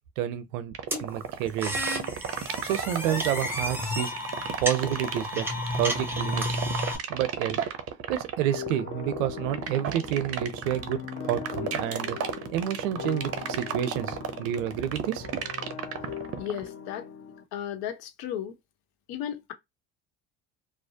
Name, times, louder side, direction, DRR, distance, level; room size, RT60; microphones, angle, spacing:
voice 1, 0.2-0.7 1.0-1.8 2.6-4.1 4.6-5.5 5.8-6.6 7.1-7.6 8.1-12.2 12.5-15.3, right 11 dB, 85° right, 0.6 m, -29 dB
sound 1, 0.7-16.7, right 9 dB, 40° right, 0.6 m, -33 dB
sound 2, 0.9-7.0, left 1 dB, 5° right, 0.7 m, -31 dB
sound 3, 8.5-17.4, left 8 dB, 35° left, 0.6 m, -40 dB
voice 2, 16.4-17.1 17.5-18.6 19.1-19.5, left 10 dB, 70° left, 0.8 m, -34 dB
2.4 x 2.0 x 2.7 m
hypercardioid pair, 75°, 37 cm